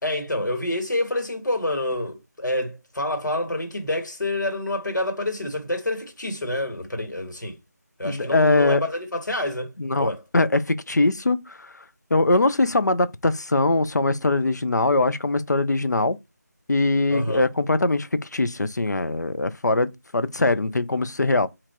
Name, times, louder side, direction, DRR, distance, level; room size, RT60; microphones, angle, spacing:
voice 1, 0.0-7.6 8.0-9.7 10.0-10.2 17.1-17.5, left 1 dB, 90° left, 2.0 m, -27 dB
voice 2, 8.0-8.8 9.8-11.7 12.1-16.2 16.7-21.5, left 2 dB, 70° left, 0.7 m, -22 dB
3.8 x 3.0 x 4.5 m
figure-of-eight pair, 180°, 10 cm